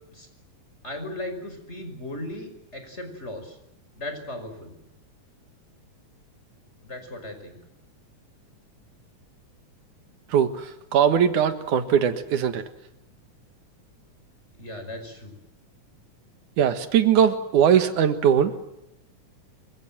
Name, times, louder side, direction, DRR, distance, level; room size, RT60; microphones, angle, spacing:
voice 1, 0.8-3.6 4.0-4.7 6.8-7.6 14.6-15.3, left 1 dB, 20° left, 7 dB, 5.8 m, -37 dB
voice 2, 10.3-10.7 10.9-12.6 16.6-18.5, right 8 dB, 85° right, 9 dB, 3.1 m, -20 dB
28.0 x 24.5 x 7.6 m, 0.86 s
omnidirectional pair, 3.5 m